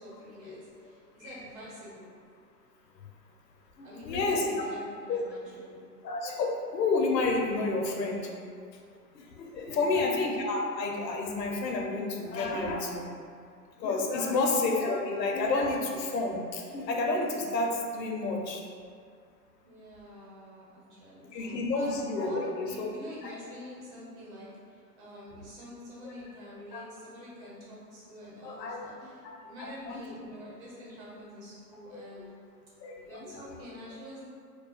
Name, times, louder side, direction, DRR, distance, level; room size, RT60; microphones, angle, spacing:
voice 1, 0.0-2.1 3.8-5.8 9.6-10.1 19.6-21.9 22.2-32.3 33.0-34.3, equal, 45° right, -6 dB, 0.9 m, -47 dB
voice 2, 3.8-4.7 5.1-5.2 6.0-8.3 9.1-13.1 13.8-18.6 21.3-22.9 23.2-23.3 25.3-25.5 26.0-26.1 26.7-26.8 28.4-28.8 29.2-30.0 31.9-32.3 32.8-33.5, left 3 dB, 85° left, 0 dB, 0.6 m, -30 dB
2.3 x 2.2 x 2.4 m, 2.2 s
hypercardioid pair, 125°, 48 cm